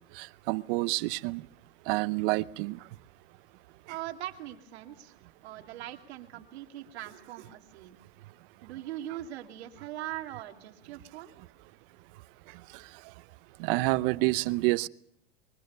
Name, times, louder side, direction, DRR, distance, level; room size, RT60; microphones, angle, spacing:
voice 1, 0.1-1.5 1.9-2.8 12.7-12.8 13.6-14.9, right 21 dB, 55° right, 0.8 m, -28 dB
voice 2, 3.9-5.1 5.4-8.0 8.6-11.4, right 13 dB, 80° right, 2.8 m, -41 dB
23.5 x 20.5 x 6.9 m
supercardioid pair, 135°, 32 cm